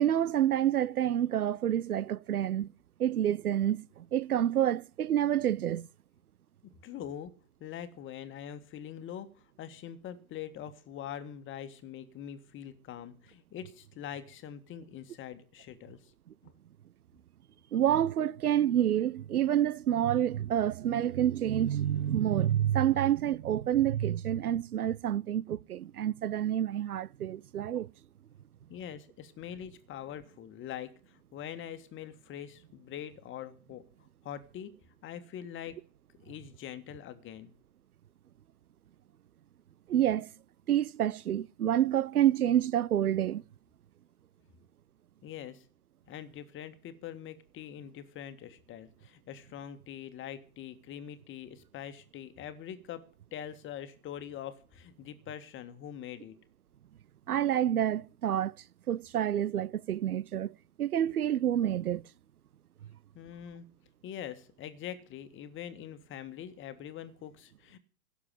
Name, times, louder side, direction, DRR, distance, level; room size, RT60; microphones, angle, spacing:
voice 1, 0.0-2.7 3.0-5.9 17.7-27.9 39.9-40.3 40.7-43.4 57.3-58.5 58.9-62.0, right 11 dB, 90° right, 0.6 m, -28 dB
voice 2, 6.8-7.3 7.6-16.1 16.4-16.5 28.7-33.8 34.2-34.7 35.0-35.8 36.2-37.5 45.2-45.7 46.1-53.0 53.3-56.4 63.2-63.7 64.0-67.8, left 10 dB, 25° left, 1.8 m, -43 dB
16.5 x 7.1 x 7.4 m
hypercardioid pair, 110°, 43 cm